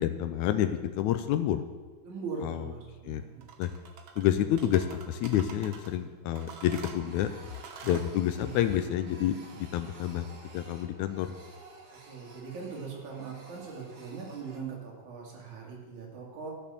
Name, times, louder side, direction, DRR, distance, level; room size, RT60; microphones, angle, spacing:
voice 1, 0.0-1.6 2.4-2.6 3.0-3.2 3.6-3.7 4.2-7.3 7.8-10.3 10.5-11.3, left 11 dB, 85° left, 9 dB, 1.7 m, -28 dB
voice 2, 2.0-3.4 8.4-8.6 12.1-16.5, right 5 dB, 60° right, -1 dB, 3.6 m, -40 dB
Printer, 3.1-3.6 4.0-4.1 4.6-6.1 6.4-14.6, right 2 dB, 45° right, 1.4 m, -53 dB
sound 1, 3.4-4.3 4.6-5.9 6.4-8.1, right 6 dB, 75° right, 1.1 m, -46 dB
13.5 x 6.9 x 7.0 m, 1.4 s
omnidirectional pair, 4.0 m